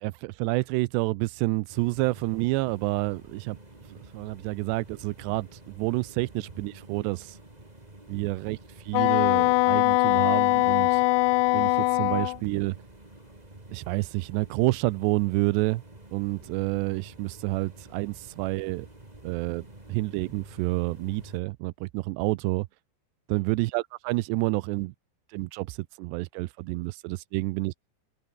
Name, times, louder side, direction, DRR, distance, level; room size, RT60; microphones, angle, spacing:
voice 1, 0.0-3.6 3.9-7.4 8.1-8.6 8.9-11.0 11.5-12.8 13.7-15.8 16.1-18.9 19.2-22.7 23.3-24.9 25.3-27.7, right 21 dB, 85° right, 2.8 m, -29 dB
sound 1, 1.7-21.4, right 2 dB, 10° right, 2.9 m, -49 dB
Wind instrument woodwind instrument, 8.9-12.4, left 22 dB, 85° left, 2.5 m, -22 dB
omnidirectional pair, 4.9 m